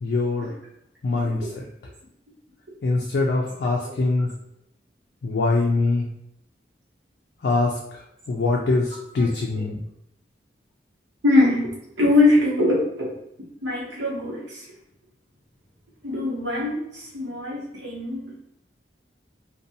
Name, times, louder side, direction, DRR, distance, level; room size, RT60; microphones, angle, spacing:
voice 1, 0.0-0.5 1.0-1.6 2.8-4.3 5.2-6.1 7.4-7.7 8.3-9.8, left 3 dB, 70° left, -2 dB, 0.3 m, -23 dB
voice 2, 11.2-13.1 13.6-14.6 16.0-18.4, left 2 dB, 85° right, -5 dB, 0.9 m, -22 dB
2.6 x 2.2 x 2.7 m, 0.76 s
head